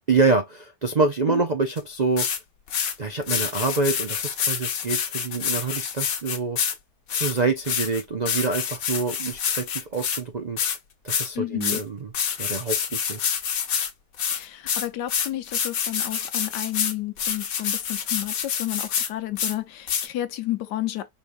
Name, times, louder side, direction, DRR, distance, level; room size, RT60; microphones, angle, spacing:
voice 1, 0.1-2.3 3.0-6.6 7.1-10.6 11.0-12.1 12.4-13.4, right 4 dB, 90° right, 0.3 m, -26 dB
sound 1, 1.8-1.9 2.2-2.4 2.7-2.9 3.2-6.8 7.1-10.2 10.6-10.8 11.1-11.3 11.6-11.8 12.1-13.9 14.2-19.1 19.4-19.5 19.9-20.1, left 8 dB, 60° left, 1.3 m, -27 dB
voice 2, 11.3-11.8 14.3-21.1, left 14 dB, 80° left, 1.3 m, -31 dB
5.3 x 3.2 x 2.5 m
omnidirectional pair, 1.8 m